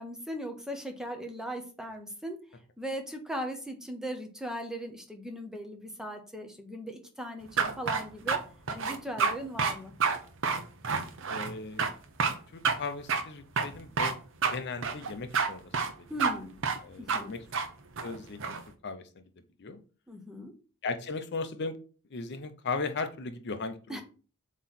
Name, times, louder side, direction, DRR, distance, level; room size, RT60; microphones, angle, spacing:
voice 1, 0.0-2.4 2.8-8.4 8.7-9.9 16.1-16.6 17.0-17.3 20.1-20.5 23.9-24.0, equal, 5° right, 4 dB, 0.8 m, -38 dB
sound 1, 7.6-8.4 8.7-9.3 9.6-9.7 10.0-10.2 10.4-11.5 11.8-11.9 12.2-12.3 12.6-12.8 13.1-13.2 13.6-14.1 14.4-14.6 14.8-15.5 15.7-15.9 16.2-16.3 16.6-16.8 17.1-17.2 17.5-17.7 18.0-18.6, right 5 dB, 60° right, 0.9 m, -28 dB
voice 2, 11.3-11.9 12.5-14.1 14.5-15.7 16.8-17.4 18.0-18.6 18.8-19.0 19.6-19.8 20.8-21.8 22.1-24.0, left 4 dB, 50° left, 9 dB, 0.7 m, -37 dB
7.6 x 3.1 x 4.2 m, 0.38 s
head